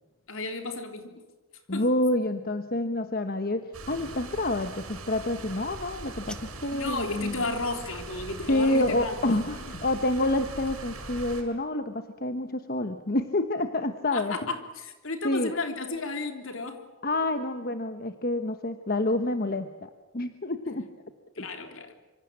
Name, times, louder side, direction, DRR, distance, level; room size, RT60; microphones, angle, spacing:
voice 1, 0.3-1.2 1.7-1.9 6.7-9.4 14.1-16.9 21.4-21.9, left 2 dB, 65° left, 6 dB, 3.5 m, -33 dB
voice 2, 1.7-7.4 8.5-14.4 15.2-15.5 17.0-20.9 21.4-21.5, left 1 dB, 45° left, 8 dB, 1.2 m, -28 dB
sound 1, 3.7-11.4, right 2 dB, 75° right, 6.3 m, -41 dB
sound 2, 5.8-6.9, left 1 dB, 5° left, 1.1 m, -49 dB
25.5 x 25.5 x 7.6 m, 1.2 s
head